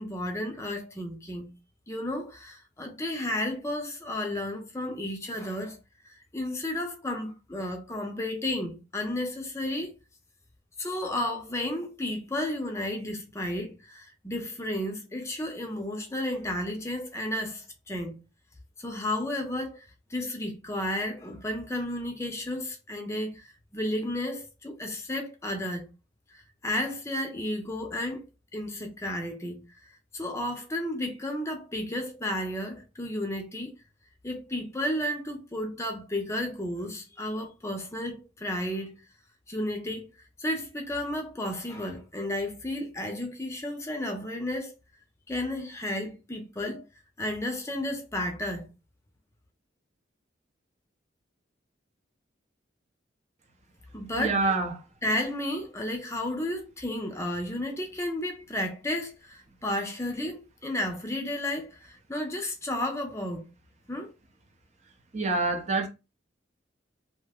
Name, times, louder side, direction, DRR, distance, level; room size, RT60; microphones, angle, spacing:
voice 1, 0.0-1.5 1.9-5.8 6.0-9.9 10.8-18.2 18.8-25.9 26.3-28.2 28.5-29.6 30.1-33.7 34.2-39.0 39.5-40.1 40.4-44.7 45.3-46.8 47.2-48.7 53.9-54.4 55.0-63.5 63.9-64.1, left 1 dB, 15° left, 0.6 m, -32 dB
voice 2, 54.2-54.7 65.1-65.9, right 3 dB, 40° right, 0.6 m, -26 dB
2.8 x 2.1 x 3.5 m
head